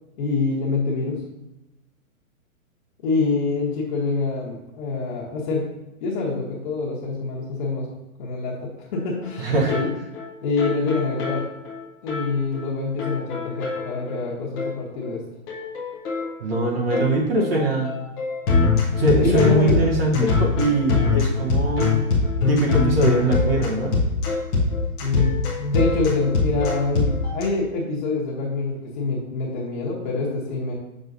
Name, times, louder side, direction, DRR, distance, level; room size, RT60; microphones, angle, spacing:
voice 1, 0.2-1.2 3.0-5.7 6.0-7.9 8.2-9.9 10.4-11.5 12.0-15.2 19.0-19.7 25.0-30.7, left 3 dB, 35° left, -5 dB, 1.2 m, -25 dB
sound 1, 8.9-9.0 9.2-9.4 9.7-9.8 10.1-10.3 10.6-12.3 12.5-12.7 13.0-14.3 14.6-14.7 15.0-15.2 15.5-27.4, left 4 dB, 15° left, 0.6 m, -23 dB
voice 2, 9.4-9.7 16.4-17.9 19.0-22.0 22.5-23.9, right 2 dB, 45° right, -1 dB, 1.0 m, -22 dB
6.6 x 6.4 x 2.6 m, 0.97 s
hypercardioid pair, 155°, 42 cm